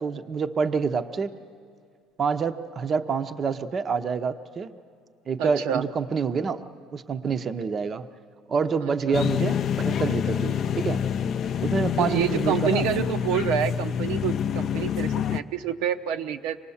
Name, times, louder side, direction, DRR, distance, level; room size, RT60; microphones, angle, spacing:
voice 1, 0.0-1.3 2.2-4.7 5.3-6.6 6.9-8.1 8.5-11.0 11.6-13.1, right 5 dB, 30° right, 9 dB, 0.6 m, -27 dB
voice 2, 5.4-5.8 8.8-8.9 12.0-16.6, right 9 dB, 85° right, 6 dB, 0.7 m, -28 dB
sound 1, 9.1-15.4, left 8 dB, 40° left, 0.5 m, -26 dB
26.0 x 18.5 x 7.1 m, 2.4 s
cardioid pair, 145°, 0 cm